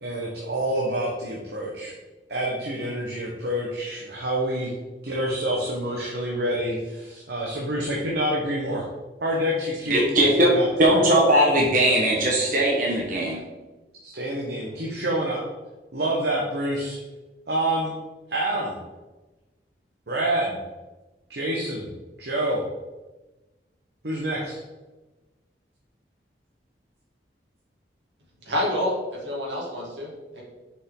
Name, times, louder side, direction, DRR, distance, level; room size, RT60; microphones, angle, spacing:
voice 1, 0.0-2.0 2.3-4.7 5.0-8.9 9.2-10.0 10.4-11.0 14.0-15.4 15.9-17.0 17.5-17.9 18.3-18.8 20.1-20.6 21.3-21.9 22.2-22.6 24.0-24.6, right 1 dB, 65° right, -3 dB, 1.1 m, -27 dB
voice 2, 9.9-10.5 10.8-13.4, right 1 dB, 45° right, -2 dB, 1.2 m, -19 dB
voice 3, 28.5-30.4, left 1 dB, 85° right, -4 dB, 2.4 m, -28 dB
6.9 x 5.3 x 3.8 m, 1.1 s
head